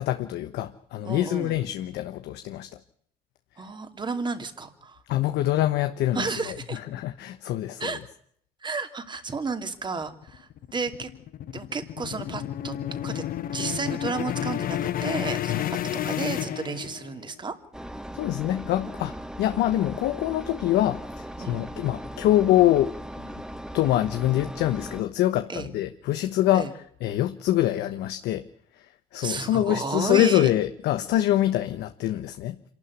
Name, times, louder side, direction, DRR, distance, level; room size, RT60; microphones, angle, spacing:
voice 1, 0.0-2.7 5.1-6.5 6.9-8.0 15.5-15.7 18.1-23.0 23.2-23.4 23.7-26.7 27.0-28.5 28.7-32.6, left 13 dB, 80° left, 9 dB, 1.1 m, -25 dB
voice 2, 1.0-1.5 3.6-5.0 6.1-6.8 7.8-8.0 8.6-11.1 11.5-12.7 13.0-13.2 13.5-17.5 21.4-21.6 25.5-25.7 26.5-26.7 29.2-30.5, right 4 dB, 25° right, 8 dB, 2.7 m, -32 dB
sound 1, 10.0-17.3, left 11 dB, 60° left, 1.0 m, -31 dB
Engine, 17.7-25.0, equal, 5° right, 1.1 m, -38 dB
26.5 x 12.0 x 9.6 m, 0.67 s
cardioid pair, 110°, 17 cm